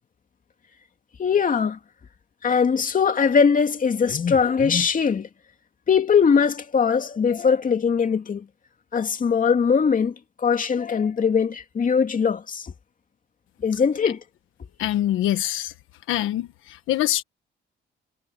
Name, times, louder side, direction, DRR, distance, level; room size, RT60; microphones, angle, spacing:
voice 1, 1.2-1.8 2.4-5.3 5.9-8.4 8.9-12.7 13.6-14.2, left 6 dB, 40° left, 2.7 m, -21 dB
voice 2, 14.8-15.7 16.1-17.2, left 13 dB, 90° left, 1.3 m, -24 dB
cardioid pair, 90°, 20 cm